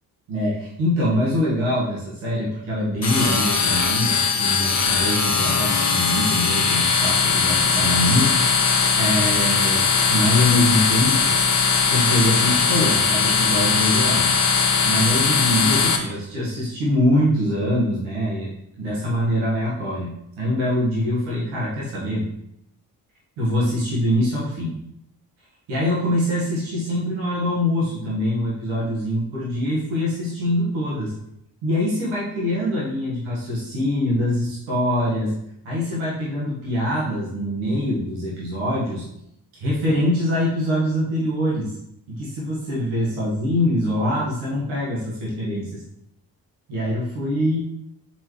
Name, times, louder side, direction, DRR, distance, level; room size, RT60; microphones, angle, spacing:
voice 1, 0.3-8.5 9.0-11.4 11.8-14.3 14.8-18.5 18.8-22.3 23.4-24.8 25.7-31.1 31.6-35.3 35.6-39.1 39.6-41.8 42.1-45.8 46.7-47.6, left 1 dB, 85° right, -7 dB, 1.7 m, -24 dB
sound 1, 3.0-16.0, left 5 dB, 35° left, 1.1 m, -20 dB
6.8 x 4.3 x 3.2 m, 0.78 s
supercardioid pair, 40°, 47 cm